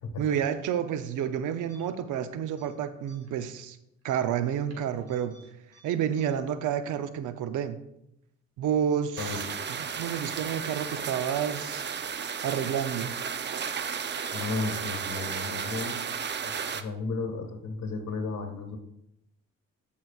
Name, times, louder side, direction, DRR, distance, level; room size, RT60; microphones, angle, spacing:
voice 1, 0.2-3.8 4.0-5.4 5.8-7.8 8.6-11.9 12.4-13.2, right 9 dB, 85° right, 11 dB, 0.7 m, -30 dB
sound 1, 1.7-2.2 2.5-2.7 3.1-3.4 4.0-5.4 5.7-5.8 6.2-6.3, right 2 dB, 55° right, 2.3 m, -59 dB
sound 2, 9.2-16.8, right 7 dB, 35° right, 0.6 m, -34 dB
voice 2, 14.3-16.0 16.4-18.8, left 3 dB, 65° left, 4 dB, 1.5 m, -34 dB
14.0 x 5.8 x 2.4 m, 0.81 s
cardioid pair, 90°, 30 cm